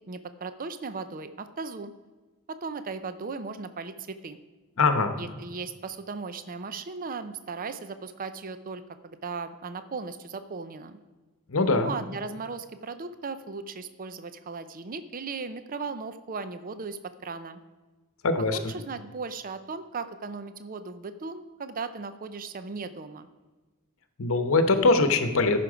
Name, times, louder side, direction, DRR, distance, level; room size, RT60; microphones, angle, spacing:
voice 1, 0.1-1.9 2.5-4.4 5.2-11.0 11.7-17.6 18.5-23.3, right 4 dB, 40° right, 11 dB, 0.5 m, -37 dB
voice 2, 4.8-5.1 11.5-11.9 18.2-18.6 24.2-25.6, left 3 dB, 65° left, 9 dB, 0.9 m, -22 dB
14.0 x 5.9 x 5.0 m, 1.3 s
head